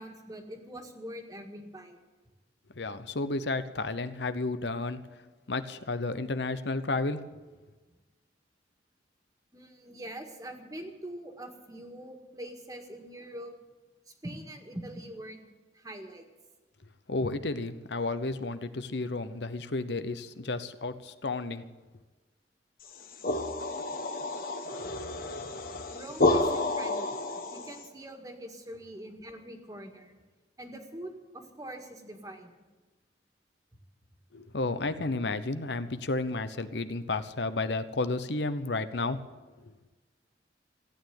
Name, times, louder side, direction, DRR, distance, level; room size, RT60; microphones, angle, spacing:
voice 1, 0.0-2.0 7.9-8.0 9.5-13.5 14.1-15.5 15.7-16.2 25.9-30.2 30.6-32.5 34.9-35.0, right 1 dB, 20° right, 4 dB, 1.8 m, -44 dB
voice 2, 2.7-5.0 5.5-7.2 17.1-21.7 34.3-39.2 39.6-39.7, left 3 dB, 70° left, 12 dB, 0.9 m, -32 dB
sound 1, 22.9-27.8, left 2 dB, 50° left, 1.3 m, -30 dB
16.0 x 9.2 x 9.2 m, 1.2 s
head